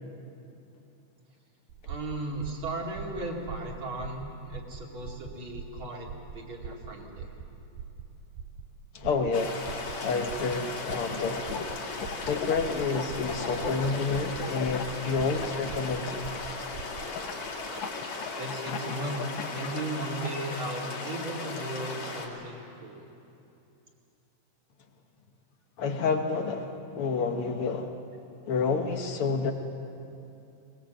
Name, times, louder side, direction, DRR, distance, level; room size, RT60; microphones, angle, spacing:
sound 1, 1.7-17.1, right 6 dB, 85° right, 2.9 m, -43 dB
voice 1, 1.9-7.3 18.3-23.1, right 1 dB, 40° right, 0 dB, 3.0 m, -36 dB
voice 2, 8.9-9.6 10.0-11.7 12.2-16.3 25.8-27.9 28.5-29.5, left 4 dB, 65° left, 5 dB, 1.4 m, -29 dB
sound 2, 9.3-22.3, left 3 dB, 45° left, 3.2 m, -37 dB
sound 3, 10.9-11.7 12.0-16.4 17.2-19.8, left 7 dB, 85° left, 1.0 m, -36 dB
23.5 x 20.0 x 7.8 m, 2.8 s
omnidirectional pair, 3.8 m